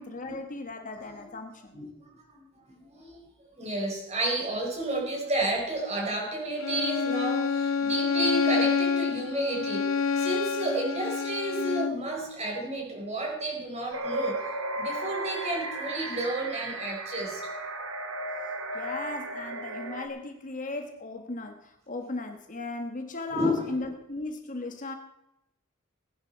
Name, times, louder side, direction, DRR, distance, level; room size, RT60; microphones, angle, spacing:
voice 1, 0.0-1.8 18.7-25.0, left 2 dB, 40° left, 6 dB, 1.3 m, -37 dB
voice 2, 2.3-3.2 3.6-9.9 10.1-14.4 14.8-17.5 23.3-23.6, right 1 dB, 30° right, 0 dB, 4.5 m, -31 dB
Bowed string instrument, 6.6-12.1, left 5 dB, 65° left, 0.6 m, -28 dB
sound 1, 13.9-20.1, right 2 dB, 65° right, 1.5 m, -35 dB
19.0 x 10.5 x 4.5 m, 0.87 s
head